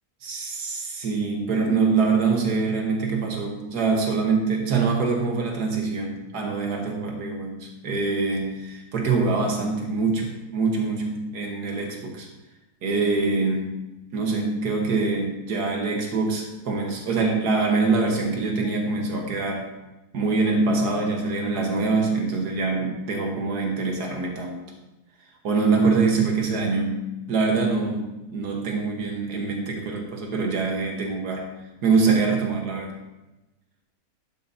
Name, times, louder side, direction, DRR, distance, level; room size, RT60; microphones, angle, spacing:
voice 1, 0.2-12.3 12.8-13.8 14.1-19.7 20.1-24.6 25.4-31.5 31.8-32.9, right 4 dB, 90° right, 1 dB, 1.9 m, -24 dB
12.0 x 8.6 x 2.8 m, 1.0 s
omnidirectional pair, 1.7 m